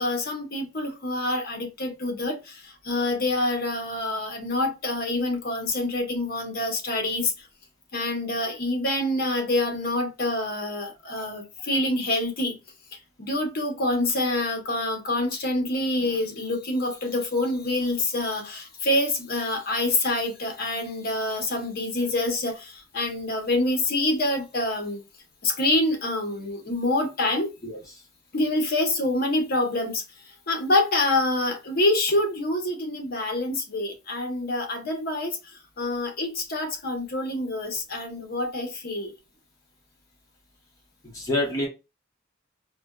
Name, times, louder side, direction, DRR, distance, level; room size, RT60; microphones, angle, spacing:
voice 1, 0.0-7.5 7.9-12.5 13.2-25.0 25.4-27.5 28.3-30.0 30.5-35.4 35.8-39.1, left 2 dB, 50° left, 0.8 m, -26 dB
voice 2, 27.6-28.0 41.0-41.7, left 1 dB, 15° left, 1.0 m, -28 dB
4.1 x 2.1 x 2.3 m
head